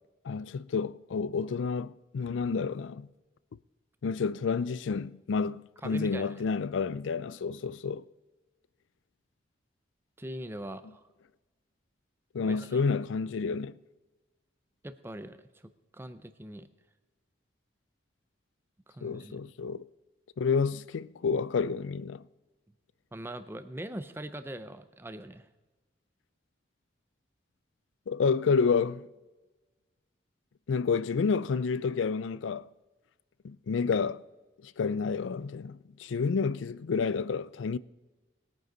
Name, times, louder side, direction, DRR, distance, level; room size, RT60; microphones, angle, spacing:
voice 1, 0.2-3.1 4.0-8.0 12.3-13.7 19.0-19.9 20.4-22.2 28.1-29.1 30.7-32.7 33.4-34.2 34.6-37.8, left 5 dB, 85° left, 0.4 m, -29 dB
voice 2, 5.8-6.3 10.2-11.0 12.4-12.8 14.8-16.7 18.9-19.4 23.1-25.5, right 1 dB, 10° right, 0.5 m, -41 dB
20.0 x 9.4 x 4.0 m
head